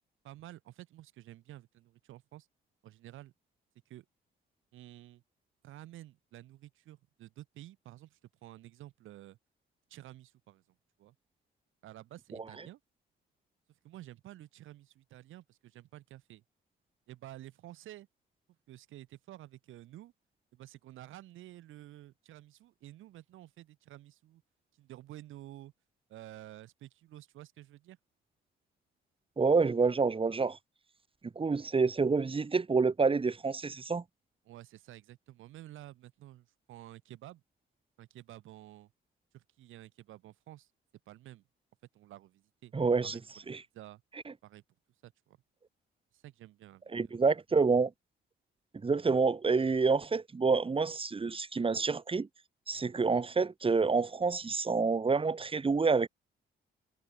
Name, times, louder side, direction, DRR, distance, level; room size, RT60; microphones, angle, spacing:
voice 1, 0.2-2.5 2.8-3.3 3.9-4.1 4.7-5.2 5.6-9.4 9.9-10.6 11.0-11.2 11.8-12.8 13.8-16.4 17.1-18.1 18.7-20.1 20.5-24.4 24.8-25.7 26.1-28.0 34.5-37.4 38.0-38.9 39.3-40.7 41.1-41.4 41.9-42.7 43.0-43.5 43.7-44.0 44.4-44.6 45.0-45.4 46.1-47.2, right 14 dB, 85° right, 7.1 m, -51 dB
voice 2, 29.4-30.6 31.4-34.0 42.7-43.2 43.5-43.6 44.3-44.4 46.9-47.9 48.8-52.3 52.7-56.1, right 4 dB, 25° right, 1.9 m, -28 dB
cardioid pair, 90°, 20 cm